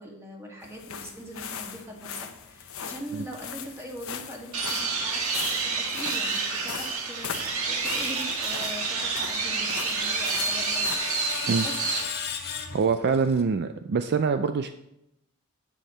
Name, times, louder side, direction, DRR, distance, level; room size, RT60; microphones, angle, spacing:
voice 1, 0.0-11.3 11.6-11.9, equal, 10° right, -1 dB, 2.1 m, -41 dB
sound 1, 0.6-11.0, left 7 dB, 70° left, 0.9 m, -40 dB
sound 2, 4.5-12.0, right 4 dB, 70° right, 1.7 m, -28 dB
Screech, 9.1-13.4, left 6 dB, 50° left, 1.6 m, -37 dB
voice 2, 12.7-14.7, right 5 dB, 50° right, 9 dB, 0.4 m, -24 dB
9.3 x 8.6 x 4.3 m, 0.83 s
head